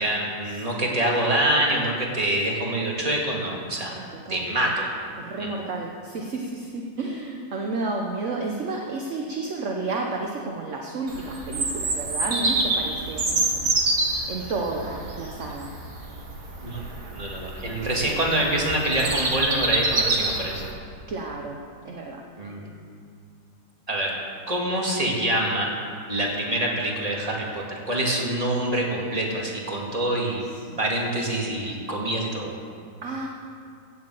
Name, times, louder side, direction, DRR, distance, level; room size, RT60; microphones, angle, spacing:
voice 1, 0.0-3.9 4.3-4.9 5.4-5.5 16.6-16.8 17.1-20.6 22.4-22.7 23.9-24.1 24.5-25.7 26.1-30.4 30.8-32.5, right 1 dB, 25° right, -2 dB, 2.3 m, -25 dB
voice 2, 3.9-4.5 5.2-13.7 14.3-15.7 21.1-21.6 21.8-22.2 30.7-30.8 33.0-33.3, right 3 dB, 50° right, 1 dB, 1.3 m, -31 dB
Bird vocalization bird call bird song, 11.1-20.7, right 2 dB, 75° right, 2.3 m, -27 dB
16.0 x 7.8 x 7.6 m, 2.2 s
omnidirectional pair, 1.7 m